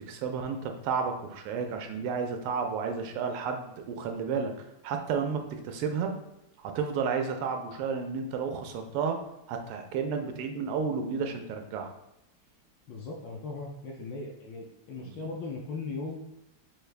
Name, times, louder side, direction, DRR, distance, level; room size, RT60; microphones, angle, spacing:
voice 1, 0.0-6.1 6.6-9.2 9.5-11.9 15.0-15.2, right 5 dB, 90° right, 5 dB, 1.5 m, -32 dB
voice 2, 12.9-16.2, left 3 dB, 75° left, 0 dB, 1.1 m, -38 dB
4.7 x 2.4 x 3.2 m, 0.88 s
omnidirectional pair, 2.4 m